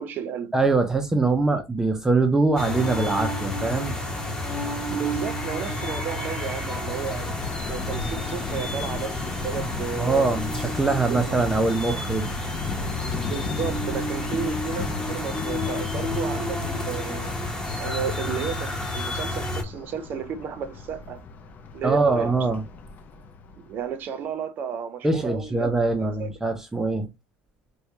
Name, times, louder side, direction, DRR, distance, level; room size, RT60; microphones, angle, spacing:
voice 1, 0.0-0.5 4.9-7.4 7.7-10.3 11.1-11.5 13.3-17.3 17.8-21.2 21.7-22.5 23.5-25.7 26.0-26.4, right 7 dB, 45° right, 0.7 m, -33 dB
voice 2, 0.5-4.0 10.0-12.3 21.8-22.6 25.0-27.1, right 3 dB, 10° right, 0.5 m, -23 dB
sound 1, 2.6-19.6, left 1 dB, 15° left, 1.0 m, -30 dB
Thunder, 6.5-23.9, left 5 dB, 40° left, 0.6 m, -37 dB
4.5 x 2.2 x 2.7 m
cardioid pair, 135°, 5 cm